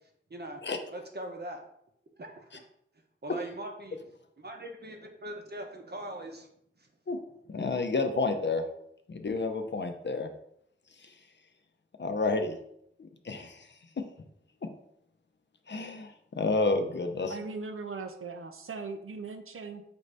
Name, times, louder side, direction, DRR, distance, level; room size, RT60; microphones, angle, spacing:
voice 1, 0.3-0.6 0.9-1.6 2.2-2.7 3.2-6.5 6.8-6.9, right 1 dB, 50° right, 3 dB, 0.7 m, -41 dB
voice 2, 7.5-8.6 9.1-10.3 12.0-12.6 13.0-13.7 15.7-17.4, left 3 dB, 60° left, 6 dB, 0.5 m, -30 dB
voice 3, 17.3-19.8, right 4 dB, 85° right, 6 dB, 0.5 m, -39 dB
5.1 x 2.6 x 3.2 m, 0.73 s
wide cardioid pair, 55°, 21 cm